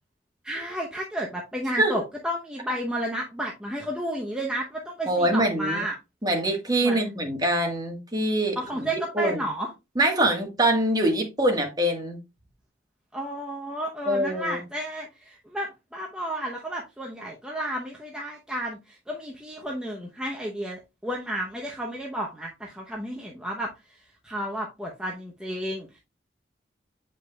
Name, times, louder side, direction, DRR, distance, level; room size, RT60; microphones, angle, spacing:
voice 1, 0.4-6.0 6.8-7.0 8.6-9.7 13.1-24.0 24.2-25.9, equal, 5° right, 0.8 m, -32 dB
voice 2, 5.1-5.8 6.2-8.6 8.9-9.4 9.9-12.2 14.1-14.6, right 1 dB, 20° right, 1.5 m, -24 dB
8.0 x 5.3 x 2.3 m
head